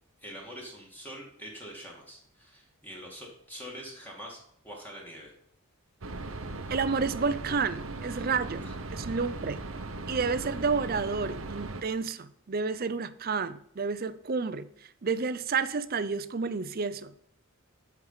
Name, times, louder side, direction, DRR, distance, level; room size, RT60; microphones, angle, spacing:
voice 1, 0.2-4.4 4.6-5.3 8.6-8.8, equal, 10° left, -2 dB, 2.1 m, -44 dB
sound 1, 6.0-11.8, right 2 dB, 65° right, 0.9 m, -38 dB
voice 2, 6.7-9.6 10.1-17.1, right 5 dB, 40° right, 14 dB, 0.5 m, -30 dB
11.0 x 4.7 x 5.6 m, 0.69 s
head